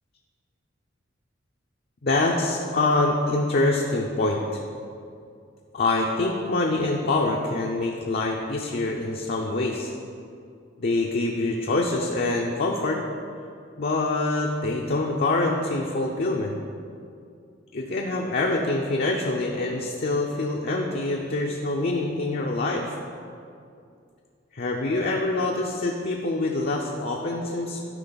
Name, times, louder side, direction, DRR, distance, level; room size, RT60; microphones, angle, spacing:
voice 1, 2.0-4.6 5.7-9.9 10.8-13.0 13.8-16.6 17.7-23.0 24.5-27.8, left 2 dB, 50° left, 0 dB, 0.6 m, -25 dB
12.5 x 5.0 x 4.0 m, 2.4 s
head